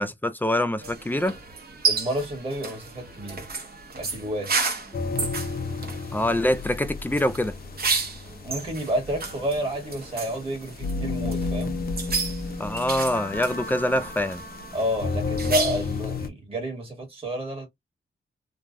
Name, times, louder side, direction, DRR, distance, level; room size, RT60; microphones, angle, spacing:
voice 1, 0.0-1.4 6.1-7.5 12.6-14.4, left 1 dB, 10° left, 0.3 m, -25 dB
sound 1, 0.8-16.0, right 4 dB, 50° right, 1.0 m, -32 dB
voice 2, 1.8-3.5 4.0-4.5 8.4-11.8 14.7-17.7, equal, 30° right, 1.6 m, -30 dB
sound 2, 4.9-16.3, left 4 dB, 50° left, 0.6 m, -32 dB
3.1 x 2.3 x 2.5 m
wide cardioid pair, 115°, 21 cm